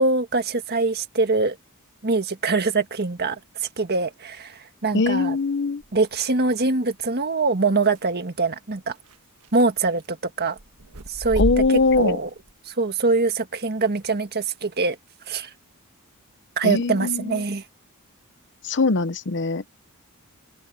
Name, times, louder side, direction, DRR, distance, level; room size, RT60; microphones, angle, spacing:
voice 1, 0.0-1.6 2.0-3.4 3.8-5.4 5.9-8.9 9.5-10.6 11.1-11.4 11.7-12.3 12.7-15.0 15.3-15.5 16.6-17.6, right 3 dB, 45° right, 1.7 m, -23 dB
voice 2, 4.9-5.8 11.4-12.2 16.6-17.4 18.6-19.8, left 4 dB, 55° left, 0.8 m, -22 dB
sound 1, 5.8-6.2 8.0-8.1 9.1-9.2 9.4-10.1 10.6-12.5, right 1 dB, 85° right, 1.4 m, -30 dB
head